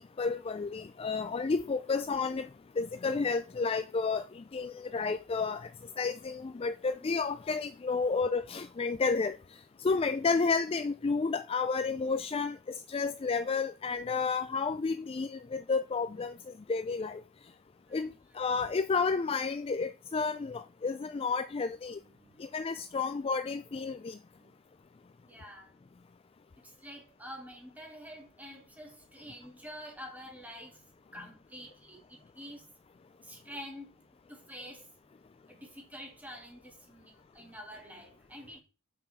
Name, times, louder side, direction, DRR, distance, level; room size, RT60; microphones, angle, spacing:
voice 1, 0.2-2.5 2.8-5.7 6.0-9.4 9.8-16.4 16.7-17.2 17.9-22.0 22.4-24.2, left 4 dB, 25° left, 0.3 m, -31 dB
voice 2, 22.0-22.6 24.4-24.5 25.2-25.8 26.6-32.7 33.2-33.9 34.3-34.9 35.5-38.6, equal, 5° right, 2.3 m, -48 dB
6.8 x 5.7 x 5.2 m
head